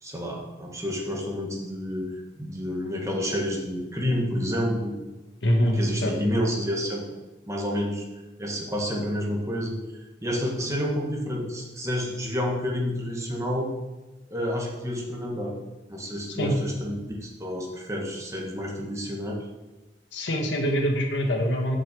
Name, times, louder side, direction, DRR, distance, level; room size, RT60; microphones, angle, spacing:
voice 1, 0.0-4.9 5.7-13.7 14.3-15.5 15.9-19.5, equal, 15° right, -1 dB, 1.5 m, -29 dB
voice 2, 5.4-6.1 16.3-16.5 20.1-21.8, equal, 85° left, 2 dB, 1.5 m, -24 dB
6.5 x 5.7 x 7.0 m, 1.1 s
head